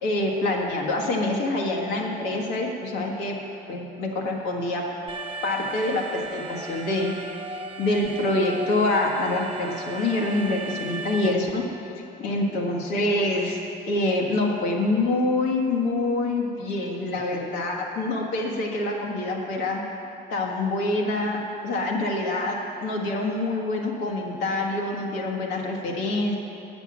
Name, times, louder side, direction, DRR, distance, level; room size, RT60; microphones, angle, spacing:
voice 1, 0.0-3.4 3.7-4.8 5.4-7.1 7.8-11.6 12.2-19.8 20.3-21.4 21.6-26.4, left 2 dB, 85° left, 0 dB, 1.5 m, -26 dB
Alarm, 5.1-11.3, right 3 dB, 30° right, 0.7 m, -36 dB
8.3 x 6.9 x 7.1 m, 2.7 s
cardioid pair, 110°, 17 cm